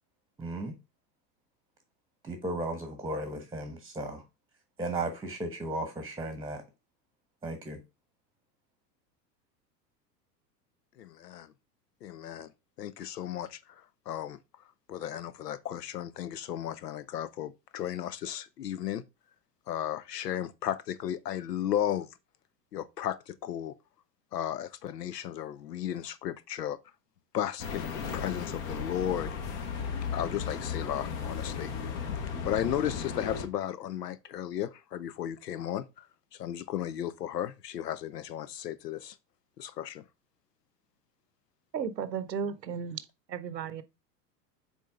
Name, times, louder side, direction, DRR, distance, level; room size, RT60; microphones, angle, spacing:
voice 1, 0.4-0.7 2.2-4.2 4.8-6.6 7.4-7.8, right 2 dB, 10° right, 1.2 m, -35 dB
voice 2, 11.0-11.5 12.0-12.5 12.8-13.6 14.1-14.4 14.9-19.0 19.7-22.1 22.7-23.7 24.3-26.8 27.3-29.4 30.1-31.7 32.4-35.8 36.4-39.1 39.6-40.0, left 11 dB, 75° left, 0.8 m, -34 dB
sound 1, 27.6-33.5, left 6 dB, 45° left, 1.6 m, -35 dB
voice 3, 41.7-43.0 43.3-43.8, right 7 dB, 85° right, 0.9 m, -34 dB
7.2 x 4.3 x 3.6 m
figure-of-eight pair, 90°, 49 cm